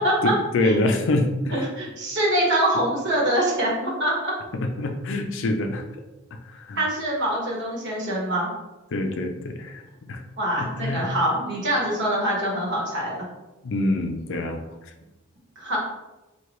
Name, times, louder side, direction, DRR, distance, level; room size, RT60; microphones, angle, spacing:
voice 1, 0.2-1.7 4.6-5.8 6.5-6.8 8.9-9.8 10.1-10.2 10.6-11.1 13.6-14.6, left 2 dB, 60° left, 5 dB, 0.5 m, -25 dB
voice 2, 1.5-4.3 6.8-8.5 10.4-13.2 15.6-15.8, right 1 dB, 55° right, -4 dB, 1.4 m, -24 dB
4.6 x 2.8 x 3.0 m, 1.0 s
head